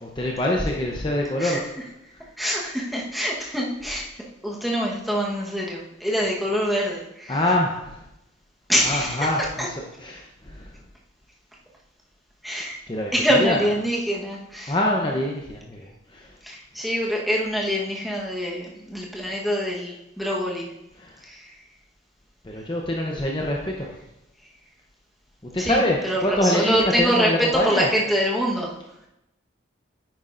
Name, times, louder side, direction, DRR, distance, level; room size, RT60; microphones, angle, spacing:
voice 1, 0.0-1.6 2.1-2.2 7.3-8.0 8.7-10.8 12.9-13.7 14.7-16.4 20.9-21.2 22.4-23.9 25.5-27.9, left 1 dB, 25° left, -1 dB, 0.7 m, -25 dB
voice 2, 2.4-4.1 4.4-7.4 8.7-9.3 9.6-9.7 12.4-12.8 13.1-14.7 16.4-20.7 21.2-21.5 25.6-28.7, equal, ahead, -4 dB, 1.2 m, -25 dB
9.8 x 9.0 x 2.6 m, 0.87 s
head